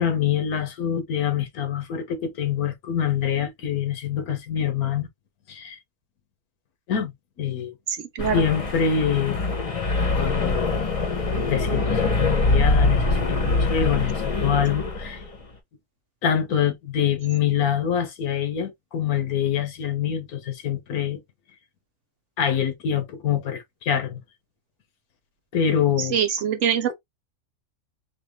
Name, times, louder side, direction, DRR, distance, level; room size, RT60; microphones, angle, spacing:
voice 1, 0.0-5.1 5.5-5.8 6.9-7.1 7.4-7.7 8.3-9.4 10.1-10.7 11.5-15.2 16.2-21.2 22.4-24.2 25.5-26.2, left 8 dB, 80° left, 1.5 m, -25 dB
voice 2, 7.9-8.4 26.0-26.9, right 8 dB, 65° right, 0.9 m, -24 dB
sound 1, 8.2-15.4, left 3 dB, 30° left, 0.8 m, -23 dB
4.0 x 2.9 x 3.1 m
omnidirectional pair, 1.6 m